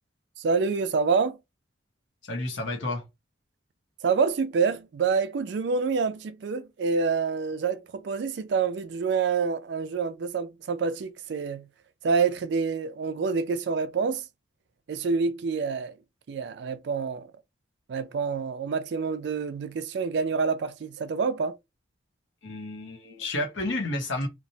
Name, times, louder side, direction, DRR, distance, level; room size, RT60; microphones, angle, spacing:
voice 1, 0.4-1.4 4.0-11.7 12.0-14.2 14.9-15.9 16.3-17.3 17.9-21.6, right 5 dB, 65° right, 0.3 m, -27 dB
voice 2, 2.3-3.0 22.4-24.3, left 2 dB, 80° left, 0.8 m, -31 dB
2.9 x 2.0 x 2.7 m
head